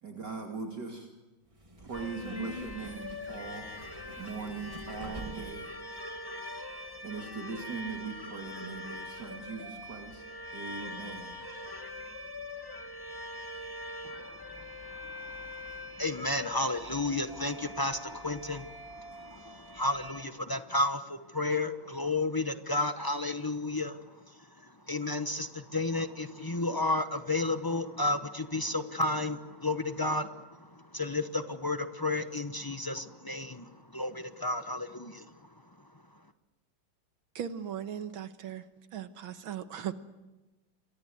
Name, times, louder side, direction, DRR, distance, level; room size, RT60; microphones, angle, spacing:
voice 1, 0.0-1.1 1.8-3.7 4.2-5.7 7.0-10.2 10.5-11.4, right 5 dB, 55° right, 1 dB, 3.1 m, -40 dB
Subway metro underground, 1.5-5.7, equal, 15° right, 1.6 m, -45 dB
sound 1, 1.9-20.2, left 1 dB, 10° left, 1.4 m, -43 dB
voice 2, 14.0-24.0 24.3-35.3, left 2 dB, 35° left, 9 dB, 0.3 m, -33 dB
voice 3, 37.4-38.7 38.9-39.9, right 9 dB, 75° right, 10 dB, 2.0 m, -38 dB
28.5 x 23.5 x 7.9 m, 1.1 s
omnidirectional pair, 2.3 m